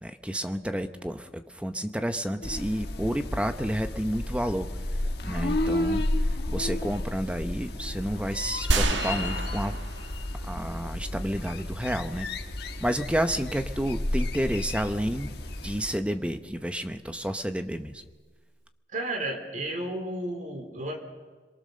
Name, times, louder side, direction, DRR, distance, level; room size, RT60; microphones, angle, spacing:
voice 1, 0.0-5.0 5.2-9.8 10.5-12.3 12.8-15.3 15.6-18.0, equal, 5° right, 8 dB, 0.9 m, -30 dB
sound 1, 2.4-16.0, left 1 dB, 60° left, 1.6 m, -32 dB
sound 2, 8.7-10.6 11.0-11.1, right 2 dB, 90° right, 1.5 m, -28 dB
voice 2, 18.9-21.0, right 1 dB, 45° right, 4 dB, 3.5 m, -33 dB
27.0 x 22.5 x 6.7 m, 1.4 s
head